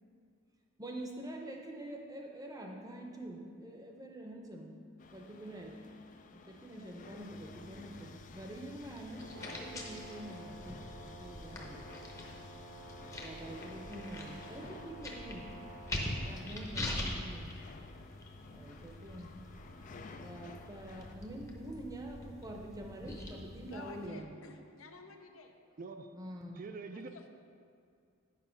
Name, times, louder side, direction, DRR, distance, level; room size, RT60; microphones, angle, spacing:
voice 1, 0.8-4.8 5.1-5.8 6.3-9.3 9.6-11.9 13.2-15.5 16.2-17.5 18.5-19.3 20.2-24.3 26.1-26.6, right 1 dB, 15° right, 1 dB, 0.7 m, -46 dB
sound 1, 5.0-21.1, left 4 dB, 35° left, 0.4 m, -54 dB
sound 2, 7.2-24.1, left 1 dB, 15° left, 0.8 m, -45 dB
Brass instrument, 9.2-16.3, right 2 dB, 70° right, 1.2 m, -51 dB
voice 2, 23.7-25.5 26.9-27.3, left 3 dB, 75° left, 5 dB, 0.7 m, -51 dB
voice 3, 25.8-26.1 26.6-27.3, right 3 dB, 40° right, 7 dB, 0.4 m, -45 dB
8.4 x 5.3 x 5.2 m, 2.3 s
head